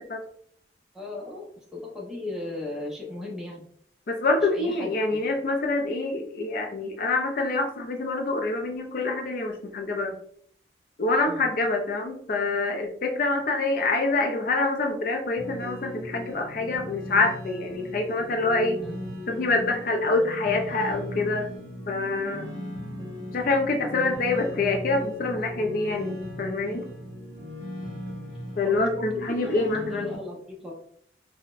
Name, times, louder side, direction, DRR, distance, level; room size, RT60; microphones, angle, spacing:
voice 1, 0.9-1.5 1.7-3.6 4.4-5.2 11.3-11.5 18.8-19.0 27.9-28.1 28.6-29.0 29.4-29.6 29.9-30.7, left 2 dB, 5° right, -3 dB, 0.7 m, -37 dB
voice 2, 4.1-10.2 11.0-18.8 19.3-21.5 21.9-22.5 23.3-26.9 28.6-30.1, left 3 dB, 50° left, 4 dB, 0.4 m, -26 dB
sound 1, 15.4-30.1, left 1 dB, 25° right, 1.2 m, -38 dB
3.9 x 2.1 x 2.4 m, 0.62 s
head